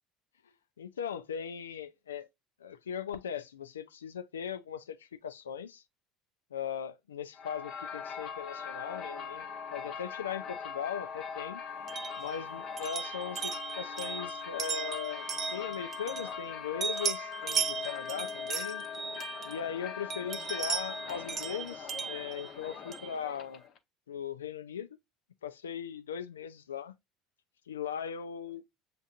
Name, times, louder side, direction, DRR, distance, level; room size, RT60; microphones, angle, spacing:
voice 1, 0.8-2.3 2.6-5.8 6.5-11.6 12.2-18.9 19.4-23.6 24.1-25.0 25.4-27.0 27.7-28.6, left 8 dB, 85° left, 0.4 m, -39 dB
sound 1, 7.3-23.8, left 7 dB, 55° left, 0.8 m, -41 dB
sound 2, 11.9-16.5 16.8-19.7 20.1-23.2, right 7 dB, 40° right, 0.6 m, -37 dB
7.4 x 2.6 x 2.4 m
hypercardioid pair, 65°, 0 cm